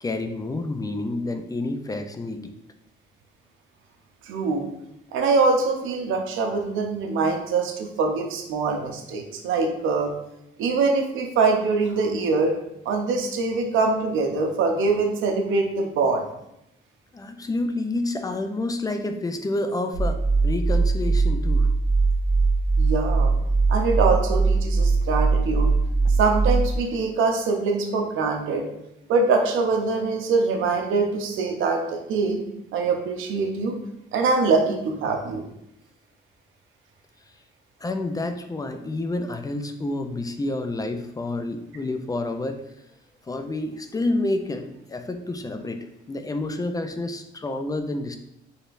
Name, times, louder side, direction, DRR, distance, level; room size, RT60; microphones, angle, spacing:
voice 1, 0.0-2.5 17.1-21.7 37.8-42.6 43.3-48.2, left 2 dB, 20° left, 7 dB, 0.4 m, -29 dB
voice 2, 4.2-4.7 5.1-10.1 10.6-12.6 12.9-16.2 22.7-23.3 23.7-25.7 26.1-28.7 29.1-32.4 32.7-33.8 34.1-35.4, right 4 dB, 85° right, 3 dB, 0.7 m, -23 dB
sound 1, 19.9-26.8, right 3 dB, 85° left, 0.9 m, -21 dB
4.2 x 3.3 x 2.5 m, 0.82 s
cardioid pair, 90°, 20 cm